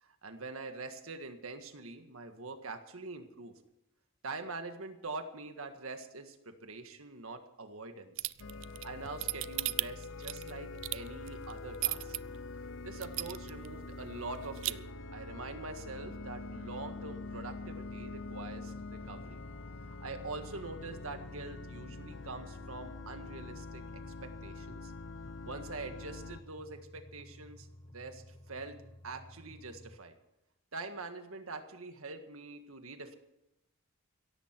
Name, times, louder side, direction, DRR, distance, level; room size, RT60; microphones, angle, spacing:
voice 1, 0.0-3.5 4.2-8.3 8.8-12.1 12.8-19.4 19.9-24.9 25.4-27.7 27.9-28.7 29.0-30.1 30.7-33.2, right 3 dB, 85° right, 7 dB, 1.7 m, -44 dB
sound 1, 8.2-12.2 12.6-12.7 13.0-13.7 14.0-14.1 14.3-14.7, right 18 dB, 60° right, 0.5 m, -34 dB
sound 2, 8.4-26.4, left 3 dB, 60° left, 0.7 m, -45 dB
sound 3, 10.8-30.0, left 1 dB, 20° left, 0.8 m, -54 dB
17.0 x 14.5 x 4.6 m, 0.91 s
head